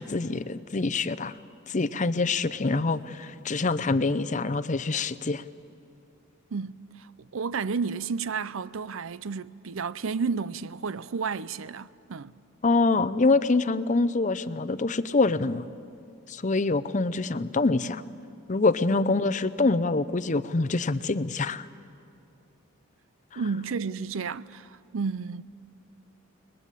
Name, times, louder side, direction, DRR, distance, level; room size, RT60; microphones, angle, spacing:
voice 1, 0.0-1.3 1.7-5.4 12.6-15.7 16.3-18.0 18.5-21.7 23.3-23.4, left 3 dB, 35° left, 0.6 m, -25 dB
voice 2, 6.5-12.3 23.4-25.4, right 5 dB, 75° right, 0.6 m, -32 dB
30.0 x 20.5 x 8.4 m
head